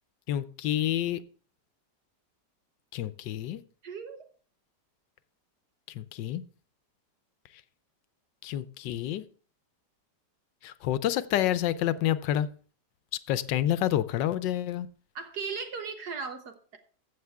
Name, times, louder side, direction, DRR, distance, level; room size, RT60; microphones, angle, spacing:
voice 1, 0.3-1.2 2.9-3.6 5.9-6.4 8.4-9.2 10.6-12.5 13.3-14.9, left 12 dB, 85° left, 14 dB, 1.3 m, -28 dB
voice 2, 3.8-4.2 15.1-16.8, right 5 dB, 65° right, 6 dB, 1.5 m, -37 dB
14.5 x 7.3 x 3.5 m, 0.43 s
omnidirectional pair, 1.9 m